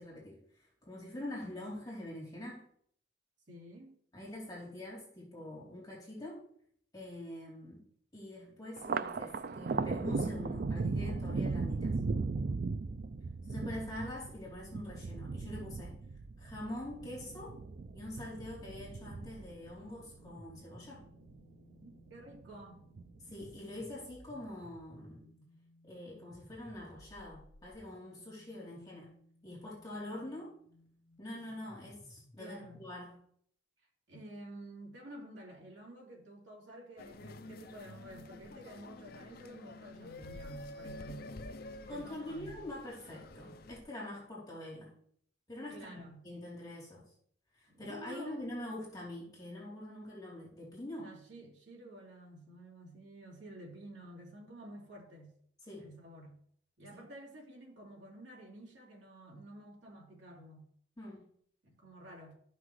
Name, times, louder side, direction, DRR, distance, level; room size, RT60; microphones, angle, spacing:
voice 1, 0.0-2.7 4.1-6.5 6.9-7.8 8.1-12.0 13.5-16.0 16.4-17.6 17.9-21.0 23.3-25.3 25.8-29.1 29.4-30.6 31.2-33.2 41.9-44.9 45.5-47.0 47.5-51.1 55.6-55.9 56.9-57.0 61.0-61.3, left 1 dB, 20° left, 3.1 m, -45 dB
voice 2, 3.5-3.9 21.8-22.8 32.4-32.8 34.1-41.4 41.9-42.5 45.7-46.2 47.7-48.5 51.0-55.3 55.8-56.4 56.8-60.7 61.6-62.3, right 1 dB, 70° right, 3.2 m, -50 dB
Thunder, 8.8-21.4 21.8-22.6 23.0-23.8, right 4 dB, 50° right, 0.4 m, -37 dB
sound 1, 20.2-33.0, left 1 dB, 90° left, 1.4 m, -60 dB
sound 2, 37.0-43.8, left 2 dB, 50° left, 0.5 m, -49 dB
13.5 x 5.9 x 3.2 m
head